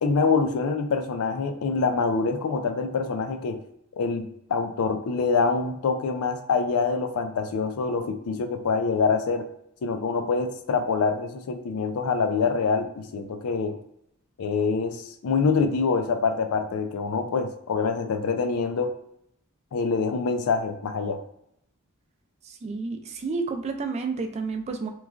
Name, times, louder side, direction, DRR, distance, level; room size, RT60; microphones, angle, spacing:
voice 1, 0.0-3.6 3.9-9.5 9.8-13.7 14.4-18.9 19.7-21.2, left 4 dB, 85° left, 7 dB, 0.4 m, -25 dB
voice 2, 22.6-24.9, right 4 dB, 30° right, 5 dB, 0.3 m, -30 dB
3.0 x 2.3 x 2.4 m, 0.76 s
head